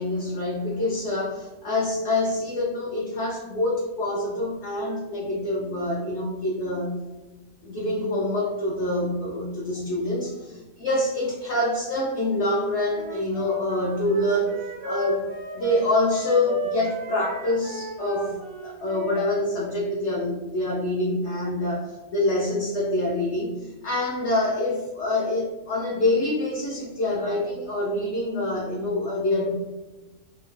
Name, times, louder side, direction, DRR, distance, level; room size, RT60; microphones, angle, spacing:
voice 1, 0.0-7.0 7.6-14.5 14.8-15.3 15.5-18.4 18.6-29.5, left 1 dB, 70° left, -3 dB, 0.7 m, -26 dB
Wind instrument woodwind instrument, 12.9-19.3, right 2 dB, 75° right, 1.1 m, -36 dB
2.8 x 2.1 x 3.1 m, 1.1 s
omnidirectional pair, 1.6 m